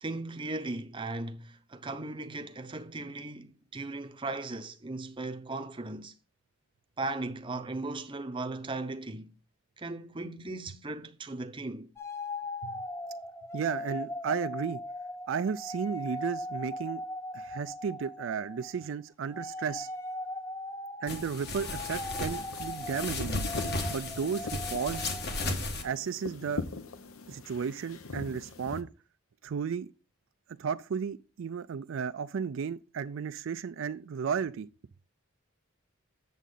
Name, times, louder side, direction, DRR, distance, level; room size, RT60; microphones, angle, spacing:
voice 1, 0.0-6.1 7.0-9.3 9.8-11.9, right 2 dB, 25° right, 0.7 m, -37 dB
sound 1, 12.0-18.9 19.2-25.5, left 1 dB, 15° left, 0.5 m, -39 dB
voice 2, 13.5-14.8 15.3-17.0 17.3-19.9 21.0-23.4 23.9-25.1 25.8-26.6 27.3-28.9 29.4-29.9 30.6-34.7, right 6 dB, 60° right, 0.4 m, -34 dB
sound 2, 21.1-25.8, left 2 dB, 50° left, 1.4 m, -35 dB
sound 3, 22.3-28.8, left 3 dB, 80° left, 0.8 m, -42 dB
8.3 x 7.2 x 3.8 m
head